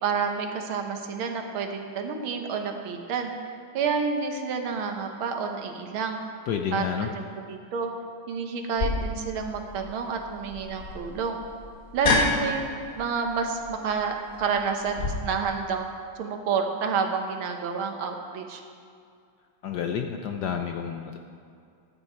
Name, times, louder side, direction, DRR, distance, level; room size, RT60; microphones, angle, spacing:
voice 1, 0.0-6.2 6.7-7.2 7.5-7.9 8.3-11.4 11.9-12.7 12.9-15.9 16.2-18.6, right 5 dB, 80° right, 4 dB, 1.9 m, -29 dB
voice 2, 6.5-7.1 19.6-21.2, left 8 dB, 65° left, 4 dB, 1.1 m, -30 dB
sound 1, 8.8-15.1, left 2 dB, 40° left, 1.9 m, -30 dB
14.5 x 9.8 x 4.6 m, 2.4 s
omnidirectional pair, 2.3 m